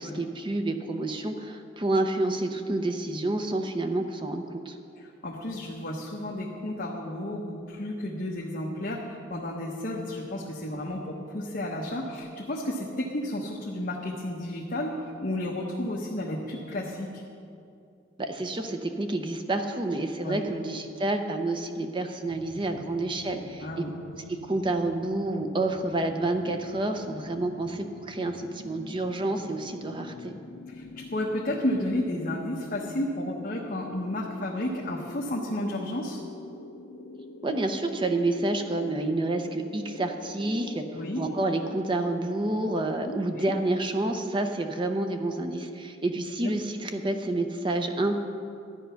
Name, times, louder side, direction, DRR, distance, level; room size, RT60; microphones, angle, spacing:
voice 1, 0.0-4.8 18.2-23.8 24.3-30.3 37.4-40.8 41.2-48.1, right 2 dB, 25° right, 5 dB, 0.7 m, -29 dB
voice 2, 5.0-17.2 20.2-20.4 23.6-23.9 30.7-36.2 40.9-41.2 43.1-43.5 46.4-46.5, left 1 dB, 50° left, -2 dB, 1.1 m, -32 dB
sound 1, 22.3-42.0, left 3 dB, 75° left, 0.6 m, -45 dB
13.0 x 9.2 x 5.7 m, 2.5 s
head